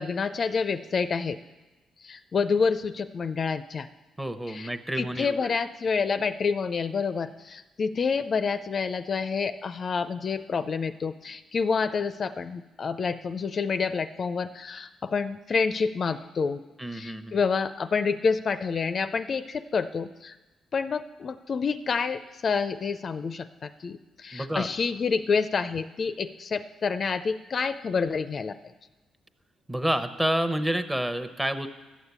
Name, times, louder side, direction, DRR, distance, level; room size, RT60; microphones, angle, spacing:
voice 1, 0.0-1.4 2.0-3.9 4.5-4.7 5.0-16.6 16.9-20.4 20.7-28.6, left 5 dB, 45° left, 11 dB, 0.4 m, -28 dB
voice 2, 4.2-5.6 16.8-17.4 24.3-24.7 29.7-31.7, right 1 dB, 10° right, 10 dB, 0.9 m, -29 dB
12.5 x 7.2 x 8.1 m, 1.1 s
cardioid pair, 90°, 0 cm